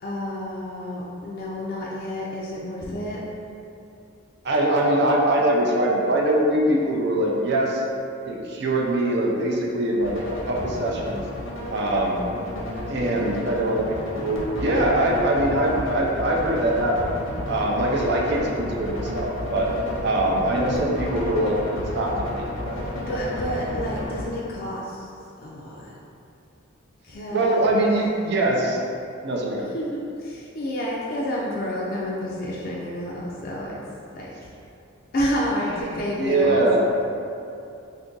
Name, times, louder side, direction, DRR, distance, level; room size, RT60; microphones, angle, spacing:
voice 1, 0.0-3.2 13.0-13.4 22.9-25.1 25.4-25.9 27.0-27.8 29.7-33.8 34.1-34.5 35.1-36.7, left 1 dB, 50° left, -5 dB, 0.3 m, -30 dB
voice 2, 4.4-7.8 8.3-11.2 11.7-12.3 12.9-17.1 17.5-19.7 20.0-22.8 23.0-23.1 27.3-28.8 29.2-29.7 35.6-36.8, right 1 dB, 55° right, -1 dB, 0.4 m, -23 dB
sound 1, 10.0-24.3, left 1 dB, 80° left, 0.7 m, -32 dB
2.6 x 2.5 x 3.7 m, 2.7 s
head